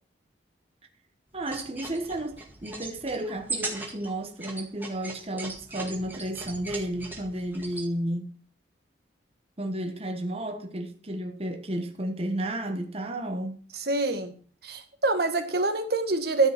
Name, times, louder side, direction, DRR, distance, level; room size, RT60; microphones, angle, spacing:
voice 1, 1.3-2.3 2.6-8.3 9.6-13.6, right 1 dB, 30° right, 1.3 m, -32 dB
sound 1, 1.4-7.9, right 3 dB, 10° right, 1.9 m, -39 dB
voice 2, 13.7-14.3 14.6-16.5, right 2 dB, 55° right, 1.6 m, -26 dB
13.5 x 5.3 x 5.9 m
head